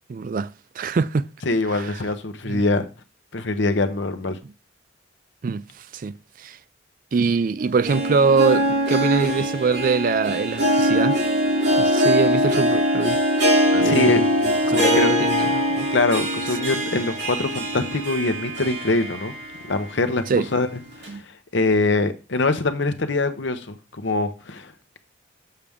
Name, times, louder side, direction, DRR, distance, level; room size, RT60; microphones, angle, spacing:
voice 1, 0.1-1.3 1.7-2.0 2.4-2.6 5.4-6.1 6.4-6.6 7.1-11.2 11.8-13.2 13.7-15.9 20.3-20.5 21.1-21.2, right 5 dB, 45° right, 0.3 m, -23 dB
voice 2, 1.5-2.9 3.3-4.4 13.8-14.2 14.7-15.1 15.9-19.3 19.7-20.2 20.5-20.7 21.0-21.2 21.5-25.0, left 2 dB, 65° left, 0.8 m, -23 dB
Harp, 7.6-19.7 20.1-20.2 21.0-21.1, equal, 60° right, 2.8 m, -22 dB
7.1 x 6.7 x 3.5 m
head